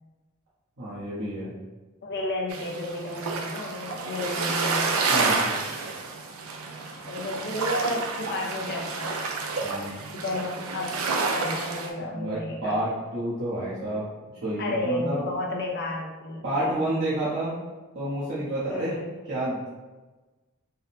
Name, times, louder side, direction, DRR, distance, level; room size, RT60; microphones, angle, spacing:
voice 1, 0.8-1.5 5.1-5.5 9.6-10.0 12.1-14.1 14.4-15.2 16.4-17.5 17.9-19.0 19.3-19.7, right 1 dB, 55° right, -10 dB, 1.0 m, -29 dB
voice 2, 2.0-5.0 6.8-9.4 10.1-11.0 11.3-12.8 14.6-16.4 18.7-19.1, left 1 dB, 50° left, -1 dB, 0.7 m, -32 dB
sound 1, 2.5-11.9, right 4 dB, 80° right, 0.5 m, -29 dB
3.8 x 2.1 x 4.1 m, 1.2 s
head